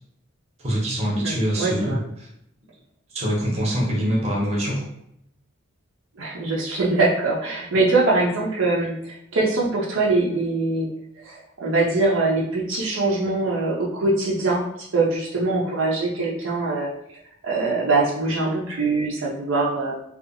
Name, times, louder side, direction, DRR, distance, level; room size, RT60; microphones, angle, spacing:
voice 1, 0.6-2.3 3.1-4.9, equal, 30° right, -3 dB, 0.8 m, -24 dB
voice 2, 1.2-2.0 6.2-10.9 11.2-14.6 14.9-16.9 17.4-19.9, right 3 dB, 70° right, -4 dB, 0.5 m, -23 dB
2.7 x 2.3 x 2.5 m, 0.76 s
head